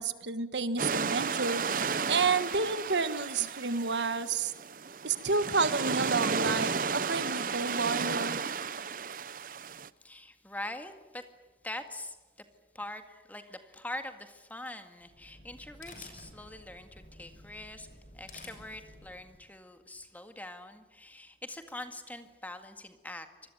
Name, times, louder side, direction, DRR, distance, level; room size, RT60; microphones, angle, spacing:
voice 1, 0.0-1.6 2.1-4.5 5.0-8.4, right 4 dB, 75° right, 12 dB, 1.5 m, -30 dB
sound 1, 0.8-9.9, right 5 dB, 50° right, 0.8 m, -33 dB
voice 2, 10.0-11.2 11.6-12.2 12.7-17.9 18.1-23.3, left 1 dB, 10° left, 7 dB, 1.9 m, -43 dB
sound 2, 15.0-19.5, left 2 dB, 45° left, 6.8 m, -52 dB
25.5 x 20.5 x 9.2 m, 1.2 s
head